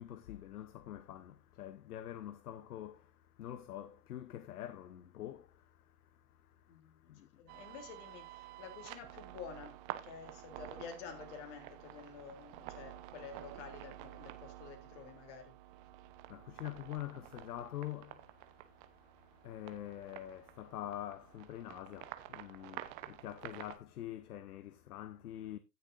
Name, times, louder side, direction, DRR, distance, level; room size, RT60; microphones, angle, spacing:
voice 1, 0.0-7.4 16.3-25.6, left 12 dB, 65° left, 1.0 m, -46 dB
voice 2, 6.7-15.5, left 6 dB, 45° left, 3.4 m, -50 dB
sound 1, 7.5-23.8, right 15 dB, 30° right, 1.0 m, -50 dB
16.0 x 6.8 x 2.6 m
hypercardioid pair, 125°, 49 cm